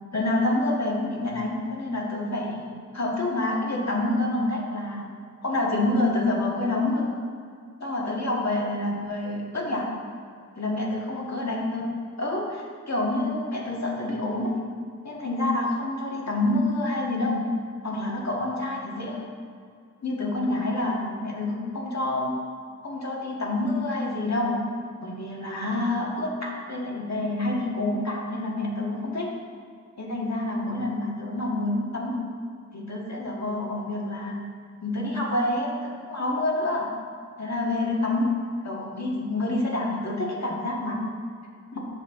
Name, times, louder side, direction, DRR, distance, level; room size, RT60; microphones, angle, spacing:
voice 1, 0.1-5.0 5.4-7.1 7.8-9.9 10.6-11.9 12.2-14.6 15.0-17.5 17.8-19.2 20.0-22.3 22.8-24.6 25.0-29.3 30.0-32.2 32.7-34.4 34.8-36.9 37.4-38.3 38.6-41.0 41.7-41.8, left 2 dB, 60° left, -3 dB, 1.8 m, -27 dB
9.0 x 6.4 x 3.7 m, 2.2 s
wide cardioid pair, 65°, 30 cm